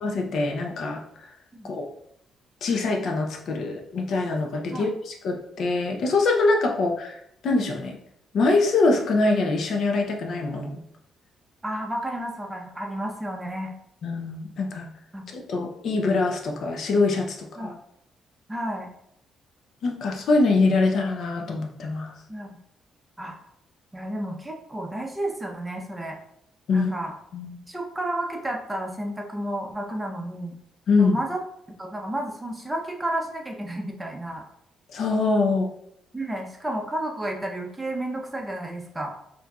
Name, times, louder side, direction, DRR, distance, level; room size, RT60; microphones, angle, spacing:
voice 1, 0.0-1.0 1.6-1.9 2.6-7.2 7.4-8.0 8.3-10.8 14.0-14.9 15.3-17.7 19.8-22.1 26.7-26.9 27.3-27.6 30.9-31.2 34.9-35.7, left 3 dB, 65° left, 2 dB, 0.6 m, -24 dB
voice 2, 11.6-13.7 15.1-15.2 17.6-17.7 18.5-18.9 22.3-22.6 23.2-23.4 23.9-26.2 26.7-27.1 27.7-30.6 31.0-31.4 31.8-34.4 36.1-39.1, right 1 dB, 15° right, 1 dB, 0.7 m, -31 dB
4.4 x 2.7 x 2.3 m, 0.73 s
cardioid pair, 90°, 0 cm